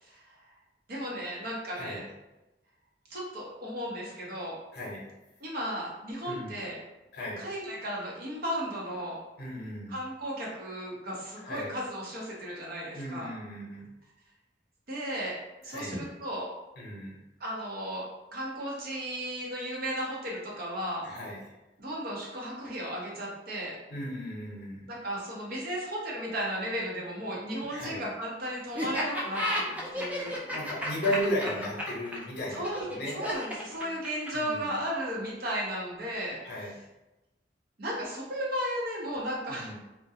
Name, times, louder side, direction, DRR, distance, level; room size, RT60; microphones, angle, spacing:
voice 1, 0.0-0.4 0.9-2.1 3.1-4.5 5.4-6.8 7.4-9.2 9.9-13.3 14.9-15.4 15.6-16.5 17.4-18.0 18.3-21.1 21.8-23.8 24.9-30.4 32.5-36.4 37.8-39.7, equal, 55° right, -4 dB, 0.7 m, -35 dB
voice 2, 4.7-5.1 6.2-6.6 7.1-7.4 9.4-10.0 11.4-11.7 12.9-13.9 15.7-15.9 16.8-17.2 21.0-21.4 23.9-24.9 27.6-28.0 30.4-33.2 33.8-33.9 34.3-34.7 36.4-36.7 39.5-39.7, equal, 60° left, -4 dB, 0.7 m, -35 dB
Laughter, 28.8-34.5, left 1 dB, 10° right, 0.4 m, -32 dB
2.3 x 2.2 x 2.7 m, 1.0 s
head